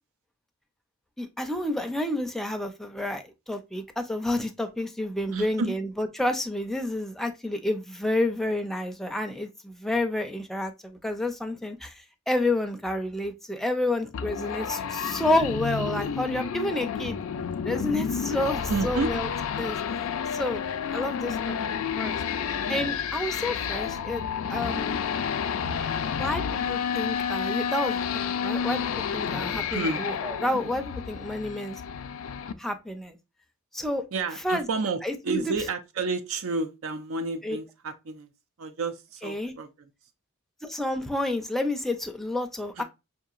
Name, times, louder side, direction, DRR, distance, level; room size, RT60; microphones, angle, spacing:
voice 1, 1.2-17.2 17.6-19.3 19.6-19.8 20.3-20.6 20.9-21.5 22.0-22.2 22.7-25.0 26.1-28.0 28.4-28.8 29.1-31.8 32.6-33.2 33.7-34.0 34.4-34.7 35.0-35.5 37.4-37.6 39.2-39.5 40.6-42.8, left 1 dB, ahead, 0.4 m, -29 dB
voice 2, 5.3-5.7 18.7-19.1 29.7-30.0 34.1-38.3 38.6-39.9 42.8-42.9, right 3 dB, 70° right, 0.5 m, -30 dB
sound 1, 14.1-32.5, left 7 dB, 70° left, 0.3 m, -30 dB
5.2 x 2.8 x 2.4 m
head